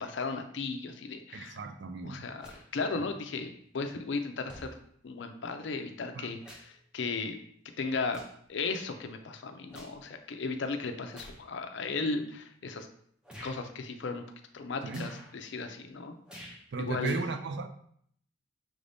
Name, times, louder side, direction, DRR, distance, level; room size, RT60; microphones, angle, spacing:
voice 1, 0.0-1.6 2.0-4.8 5.0-7.3 7.8-8.2 8.5-12.9 13.4-14.2 14.5-16.1 16.8-17.2, left 4 dB, 60° left, 0.4 m, -35 dB
voice 2, 1.3-2.3 3.0-3.1 6.1-6.3 14.8-15.1 16.7-17.7, right 3 dB, 55° right, 0.4 m, -35 dB
sound 1, 2.4-2.7 3.7-3.8 4.5-4.7 5.9-6.8 7.2-7.4 8.0-8.5 8.9-10.0 11.1-11.4 12.1-12.2 13.2-13.6 14.9-15.3 16.3-16.7 17.0-17.1, equal, 5° right, 0.5 m, -49 dB
5.9 x 2.6 x 3.4 m
head